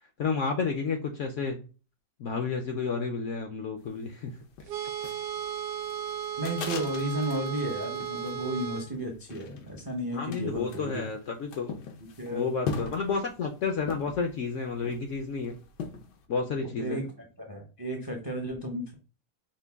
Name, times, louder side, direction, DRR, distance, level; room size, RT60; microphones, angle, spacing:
voice 1, 0.2-1.6 2.2-4.3 10.1-11.7 12.3-15.6 16.3-17.0, left 5 dB, 65° left, 4 dB, 0.7 m, -31 dB
sound 1, 3.8-16.2, left 5 dB, 85° left, 1.4 m, -41 dB
sound 2, 4.7-8.9, right 9 dB, 70° right, 0.9 m, -35 dB
voice 2, 6.4-11.1 12.2-12.5 16.6-18.9, right 1 dB, 35° right, 2 dB, 0.3 m, -33 dB
5.2 x 2.2 x 3.4 m, 0.34 s
omnidirectional pair, 1.7 m